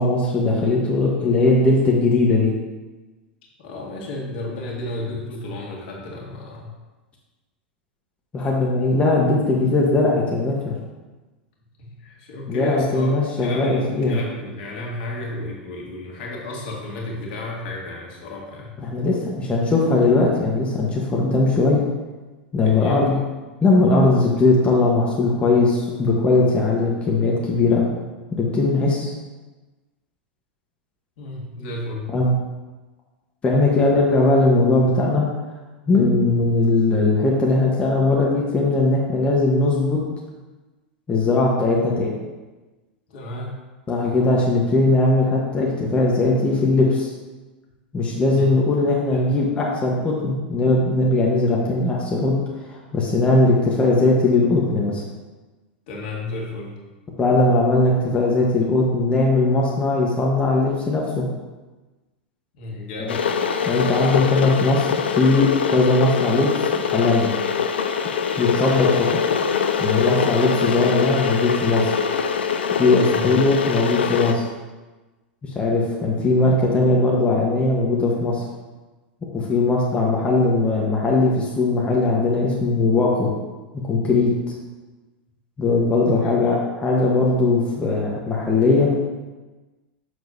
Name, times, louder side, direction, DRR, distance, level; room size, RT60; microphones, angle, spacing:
voice 1, 0.0-2.5 8.3-10.8 12.5-14.2 18.8-21.8 22.5-23.2 23.6-27.8 28.3-29.1 32.1-32.3 33.4-35.2 35.9-40.0 41.1-42.2 43.9-47.1 47.9-52.3 52.7-55.0 57.2-61.2 63.0-63.2 63.6-66.5 66.8-67.3 68.4-69.2 69.8-71.9 72.8-74.5 75.4-78.4 79.3-83.3 83.8-84.3 85.6-88.9, left 2 dB, 20° left, -3 dB, 1.2 m, -19 dB
voice 2, 3.6-6.7 11.8-13.1 13.4-18.8 22.6-23.0 31.2-32.2 43.1-43.6 48.4-48.5 49.1-49.4 55.9-56.8 62.6-63.4 73.1-73.3 86.2-86.3, left 2 dB, 60° left, -2 dB, 1.8 m, -33 dB
Water / Boiling, 63.1-74.3, left 6 dB, 75° left, 0.5 m, -23 dB
6.7 x 6.3 x 2.7 m, 1.2 s
hypercardioid pair, 95°, 6 cm